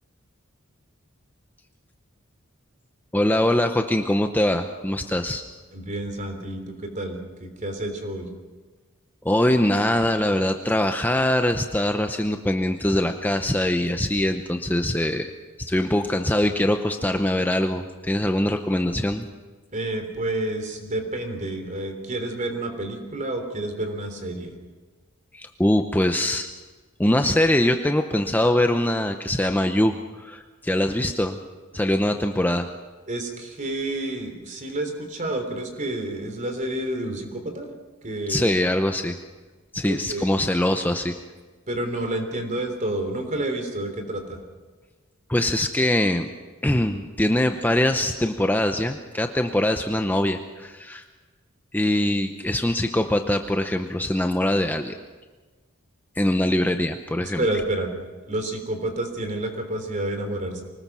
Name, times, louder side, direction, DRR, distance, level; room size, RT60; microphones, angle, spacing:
voice 1, 3.1-5.4 9.2-15.3 15.6-19.3 25.3-26.5 27.0-31.4 31.7-32.7 38.3-39.2 39.7-41.1 45.3-46.3 46.6-51.0 51.7-55.0 56.2-57.5, left 1 dB, 10° left, 6 dB, 0.7 m, -23 dB
voice 2, 5.7-8.3 19.7-24.6 33.1-37.7 38.0-38.5 39.9-40.3 41.7-44.4 57.2-57.9 58.2-60.6, right 1 dB, 35° right, 5 dB, 3.4 m, -29 dB
24.5 x 19.0 x 6.1 m, 1.3 s
head